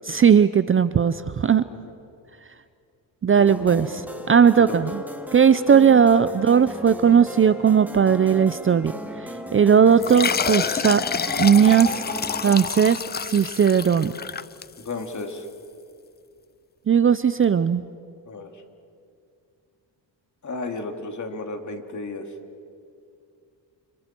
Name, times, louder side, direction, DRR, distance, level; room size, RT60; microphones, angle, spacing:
voice 1, 0.1-1.6 3.2-4.9 5.3-8.9 9.5-11.0 11.4-11.9 12.4-14.1 16.9-17.8, right 7 dB, 30° right, 14 dB, 0.6 m, -17 dB
sound 1, 3.3-12.6, equal, 5° right, 2.0 m, -37 dB
sound 2, 10.0-15.2, left 6 dB, 25° left, 0.5 m, -28 dB
voice 2, 14.8-15.5 18.2-18.6 20.4-22.3, left 3 dB, 40° left, 4 dB, 2.9 m, -33 dB
30.0 x 29.0 x 4.6 m, 2.4 s
cardioid pair, 95°, 43 cm